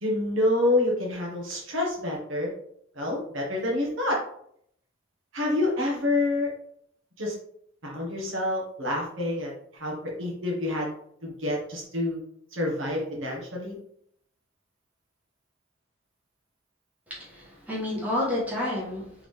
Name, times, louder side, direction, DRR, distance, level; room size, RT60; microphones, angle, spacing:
voice 1, 0.0-2.5 2.9-4.2 5.3-6.5 7.2-7.3 7.8-10.9 11.2-12.2 12.5-13.8, left 1 dB, 70° right, -2 dB, 1.2 m, -27 dB
voice 2, 17.1-19.3, left 1 dB, 10° right, -7 dB, 1.5 m, -30 dB
3.8 x 3.6 x 3.2 m, 0.70 s
head